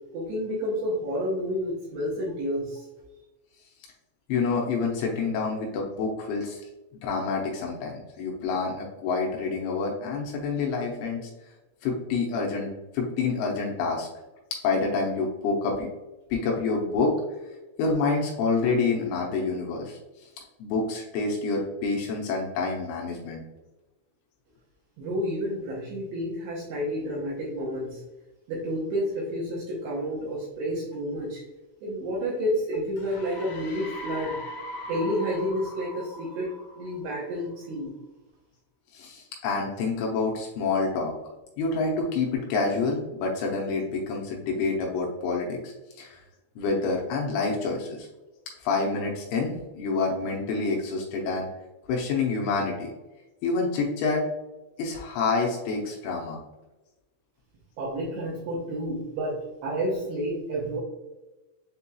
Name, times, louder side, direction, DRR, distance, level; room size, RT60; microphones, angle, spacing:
voice 1, 0.1-2.9 25.0-28.0 28.5-31.4 31.8-34.4 34.9-36.5 36.8-37.9 57.8-60.8, equal, 80° right, -5 dB, 2.5 m, -30 dB
voice 2, 4.3-6.6 7.0-11.3 11.8-14.1 14.6-15.9 16.3-17.1 17.8-20.3 20.6-23.4 38.9-41.1 41.6-46.2 46.6-48.1 48.6-51.5 51.9-52.9 53.4-54.2 54.8-56.4, left 4 dB, 80° left, -1 dB, 2.8 m, -27 dB
sound 1, 33.0-37.5, left 1 dB, 65° left, 2.5 m, -40 dB
7.6 x 2.8 x 2.2 m, 1.1 s
omnidirectional pair, 5.9 m